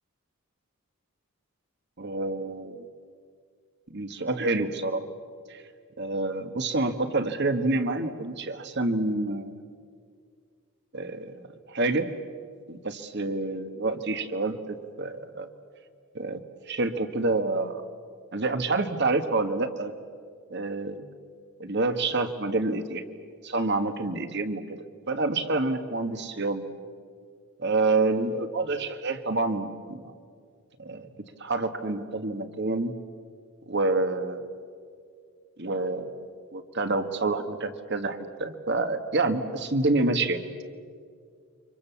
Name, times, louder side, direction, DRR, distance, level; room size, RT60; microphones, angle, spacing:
voice 1, 2.0-2.8 3.9-5.0 5.5-5.6 6.0-9.6 10.9-11.4 11.7-12.1 12.7-15.5 16.1-16.4 16.7-17.8 18.3-19.9 20.5-21.1 21.6-23.1 23.4-24.8 25.1-26.7 27.6-30.1 30.8-31.1 31.4-32.9 33.7-34.5 35.6-36.3 36.5-40.4, right 2 dB, 50° right, 8 dB, 1.6 m, -28 dB
29.5 x 25.5 x 7.1 m, 2.2 s
head